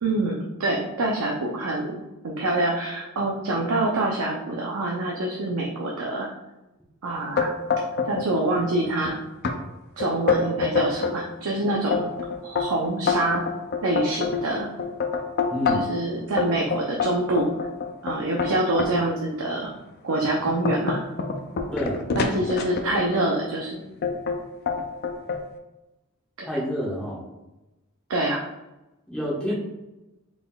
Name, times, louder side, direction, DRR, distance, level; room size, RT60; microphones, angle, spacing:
voice 1, 0.0-6.3 7.0-7.5 8.0-9.2 10.0-12.1 12.4-13.4 13.8-14.7 15.7-17.5 18.0-19.7 20.0-21.0 22.2-23.9 26.4-26.5 28.1-28.4, right 2 dB, 75° right, -2 dB, 0.5 m, -26 dB
sound 1, 7.4-8.3 8.6-9.1 9.4-9.6 10.0-11.2 11.7-16.0 16.4-18.9 19.5-19.7 20.2-23.2 24.0-24.4 24.7-25.4, left 5 dB, 45° left, 0.4 m, -26 dB
voice 2, 15.5-15.9 21.7-22.0 26.4-27.2 29.1-29.5, equal, 5° left, -7 dB, 1.1 m, -28 dB
4.0 x 3.6 x 2.3 m, 0.98 s
head